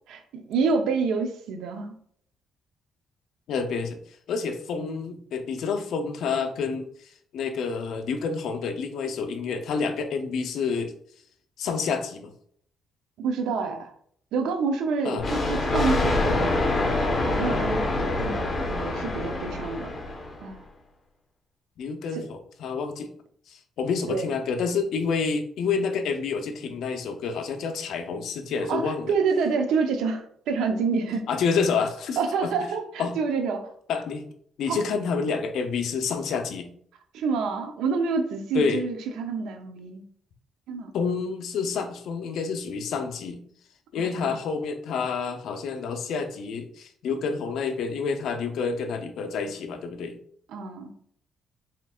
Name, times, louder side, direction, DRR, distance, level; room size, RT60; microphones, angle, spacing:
voice 1, 0.1-1.9 13.2-13.9 14.3-16.5 17.2-20.0 20.4-20.6 22.1-22.2 24.1-24.3 28.7-31.2 32.2-33.7 34.7-34.8 37.1-40.0 40.7-40.9 44.0-44.3 50.5-50.9, right 5 dB, 85° right, 5 dB, 0.7 m, -28 dB
voice 2, 3.5-4.0 4.3-6.9 7.3-10.9 11.6-12.3 15.0-15.3 21.8-23.1 23.5-29.1 31.3-32.5 33.0-33.2 33.9-34.2 34.6-36.7 38.5-38.8 40.9-43.4 43.9-50.2, left 5 dB, 75° left, 7 dB, 0.6 m, -28 dB
Thunder, 15.2-20.5, left 2 dB, 45° left, 1.2 m, -26 dB
4.4 x 3.7 x 2.4 m, 0.63 s
cardioid pair, 90°, 0 cm